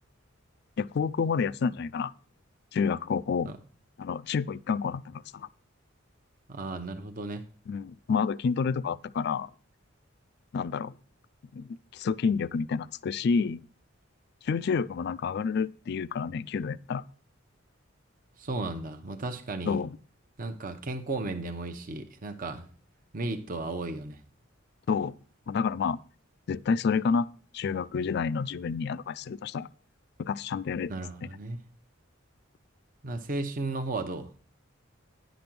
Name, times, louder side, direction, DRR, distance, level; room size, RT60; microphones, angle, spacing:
voice 1, 0.8-2.1 2.7-3.5 4.0-5.5 7.7-9.5 10.5-10.9 11.5-13.6 14.4-17.0 19.7-19.9 24.9-25.2 25.5-26.0 26.5-27.3 27.5-29.7 30.2-30.9, left 5 dB, 55° left, 0.3 m, -29 dB
voice 2, 6.5-7.4 18.4-19.8 20.4-22.6 23.1-24.2 30.9-31.6 33.0-34.3, right 2 dB, 45° right, 0.8 m, -34 dB
10.5 x 5.1 x 6.0 m
head